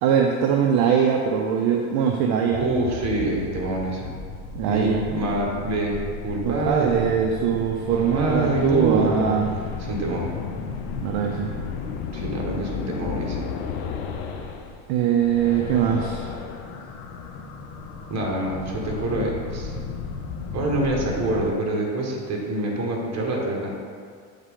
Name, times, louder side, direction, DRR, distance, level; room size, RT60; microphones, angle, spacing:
voice 1, 0.0-2.7 4.5-5.0 6.4-9.5 11.0-11.5 14.9-16.2, right 7 dB, 60° right, 2 dB, 0.6 m, -22 dB
sound 1, 2.5-14.9 15.1-21.5, left 5 dB, 70° left, 0.8 m, -34 dB
voice 2, 2.6-4.1 4.7-6.0 6.2-7.1 7.9-9.3 9.8-10.3 12.1-13.5 18.1-19.8 20.5-23.7, right 1 dB, 35° right, -1 dB, 1.5 m, -26 dB
7.9 x 3.6 x 3.7 m, 2.1 s
supercardioid pair, 100°, 44 cm